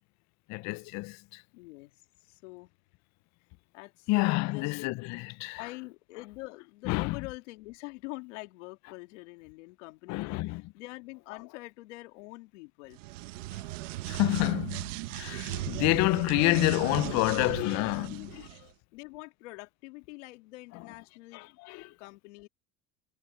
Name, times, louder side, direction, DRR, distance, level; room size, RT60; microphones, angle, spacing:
voice 1, 0.5-1.4 4.1-5.6 6.9-7.2 10.1-10.6 13.5-13.6 14.1-18.1 21.3-21.9, left 23 dB, 50° left, 0.4 m, -28 dB
voice 2, 1.5-1.9 2.2-2.7 3.7-4.8 5.6-13.0 16.9-18.5 18.9-21.6 21.9-22.5, left 22 dB, 80° left, 2.9 m, -45 dB
sound 1, 12.9-18.6, right 18 dB, 85° right, 1.1 m, -37 dB
supercardioid pair, 110°, 36 cm